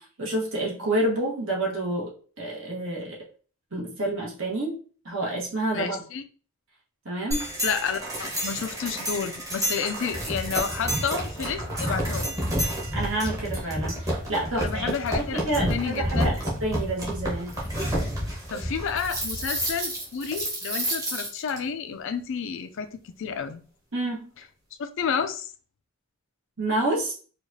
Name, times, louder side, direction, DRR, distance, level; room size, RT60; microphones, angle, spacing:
voice 1, 0.0-2.1 2.4-3.2 3.7-6.0 7.0-7.5 12.9-16.3 16.6-17.5 23.9-24.3 26.6-27.1, right 1 dB, 60° right, 1.3 m, -29 dB
voice 2, 5.7-6.2 7.6-12.4 14.6-15.4 15.7-16.4 18.5-23.6 24.8-25.5, left 6 dB, 60° left, 0.4 m, -30 dB
sound 1, 7.3-21.6, equal, 15° right, 1.0 m, -29 dB
4.7 x 2.4 x 2.7 m
head